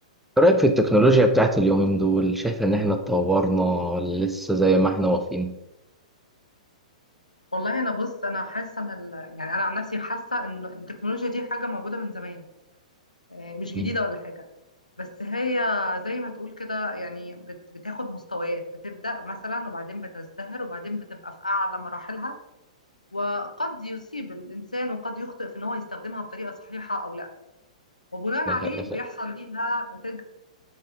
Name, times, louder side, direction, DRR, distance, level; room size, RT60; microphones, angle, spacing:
voice 1, 0.4-5.5 13.7-13.9, right 1 dB, 5° right, 6 dB, 0.4 m, -20 dB
voice 2, 7.5-12.5 13.3-14.5 15.0-22.4 23.1-27.3 28.1-30.2, left 2 dB, 90° left, 6 dB, 0.8 m, -31 dB
7.6 x 3.5 x 3.6 m, 0.93 s
figure-of-eight pair, 110°, 4 cm